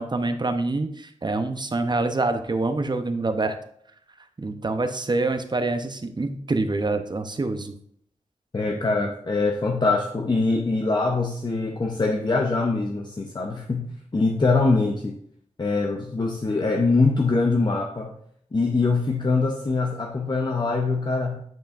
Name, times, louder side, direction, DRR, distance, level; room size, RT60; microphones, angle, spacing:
voice 1, 0.0-3.6 4.4-7.7, right 2 dB, 35° right, 8 dB, 0.7 m, -26 dB
voice 2, 8.5-13.9 14.1-15.2 15.6-18.1 18.5-21.4, left 3 dB, 35° left, 2 dB, 0.7 m, -23 dB
9.0 x 5.6 x 2.5 m, 0.68 s
wide cardioid pair, 65°, 13 cm